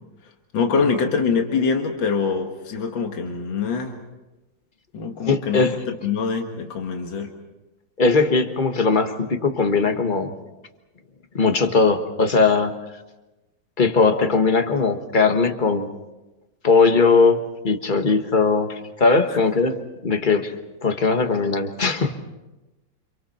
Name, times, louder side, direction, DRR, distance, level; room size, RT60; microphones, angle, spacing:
voice 1, 0.5-4.0 4.9-5.7 6.0-7.3 19.3-19.4, left 5 dB, 70° left, 3 dB, 2.4 m, -24 dB
voice 2, 5.3-5.8 8.0-10.3 11.3-12.7 13.8-15.9 16.6-19.8 20.0-20.5 20.8-22.2, left 4 dB, 25° left, 6 dB, 1.4 m, -19 dB
30.0 x 27.5 x 4.3 m, 1.0 s
omnidirectional pair, 2.1 m